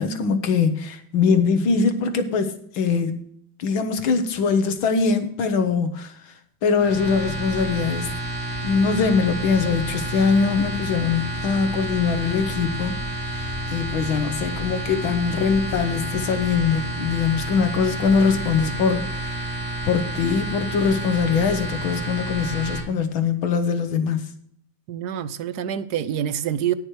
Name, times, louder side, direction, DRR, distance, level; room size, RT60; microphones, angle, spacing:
voice 1, 0.0-3.2 3.6-6.1 6.6-8.1 8.6-13.0 13.3-19.4 19.9-24.3, left 5 dB, 90° left, 2.0 m, -22 dB
sound 1, 6.8-22.8, right 1 dB, 5° right, 2.8 m, -30 dB
voice 2, 24.9-26.7, right 10 dB, 65° right, 1.1 m, -26 dB
19.0 x 6.5 x 3.2 m
omnidirectional pair, 2.1 m